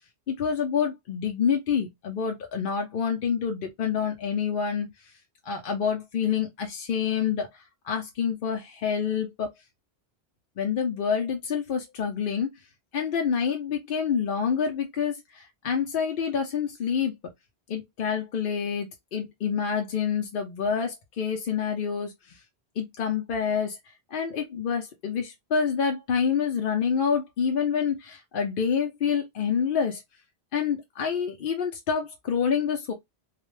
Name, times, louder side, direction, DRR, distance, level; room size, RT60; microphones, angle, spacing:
voice 1, 0.3-4.9 5.5-7.5 7.8-9.5 10.6-12.5 12.9-17.1 17.7-22.4 22.8-23.8 24.1-30.0 30.5-32.9, left 7 dB, 60° left, 0.7 m, -27 dB
2.4 x 2.0 x 3.0 m
omnidirectional pair, 1.1 m